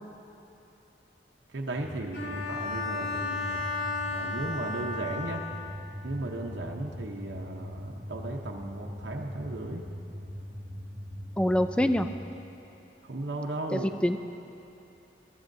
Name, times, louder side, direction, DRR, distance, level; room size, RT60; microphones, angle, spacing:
voice 1, 1.5-3.6 4.1-5.4 6.0-9.8 13.0-13.9, right 2 dB, 85° right, 0 dB, 0.8 m, -36 dB
sound 1, 1.7-12.2, equal, 40° right, 1.6 m, -41 dB
Bowed string instrument, 2.1-5.8, left 3 dB, 70° left, 2.4 m, -34 dB
voice 2, 11.4-12.1 13.7-14.2, equal, 5° left, 8 dB, 0.3 m, -25 dB
21.5 x 13.0 x 2.6 m, 2.9 s
head